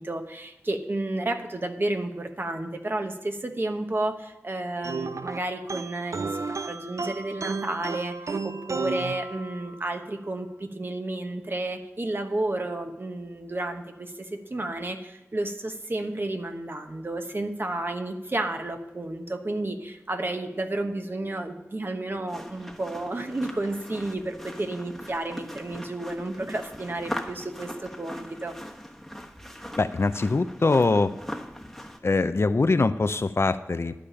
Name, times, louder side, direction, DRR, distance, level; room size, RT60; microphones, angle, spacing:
voice 1, 0.0-6.3 6.7-28.6, right 2 dB, 45° right, 5 dB, 1.2 m, -31 dB
sound 1, 4.8-9.9, right 4 dB, 80° right, 0.4 m, -33 dB
sound 2, 22.3-32.0, equal, 5° left, 1.2 m, -40 dB
voice 2, 29.8-31.1 32.0-33.9, left 3 dB, 55° left, 11 dB, 0.5 m, -23 dB
12.0 x 5.0 x 8.7 m, 0.98 s
wide cardioid pair, 70°, 5 cm